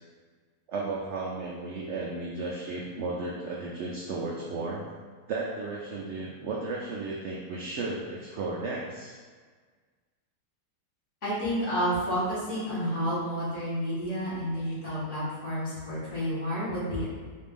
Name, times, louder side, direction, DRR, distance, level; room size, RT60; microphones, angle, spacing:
voice 1, 0.7-4.8 5.3-9.1, right 3 dB, 80° right, -4 dB, 0.6 m, -34 dB
voice 2, 11.2-17.1, equal, 50° left, -10 dB, 1.8 m, -30 dB
4.2 x 2.5 x 3.6 m, 1.5 s
omnidirectional pair, 1.7 m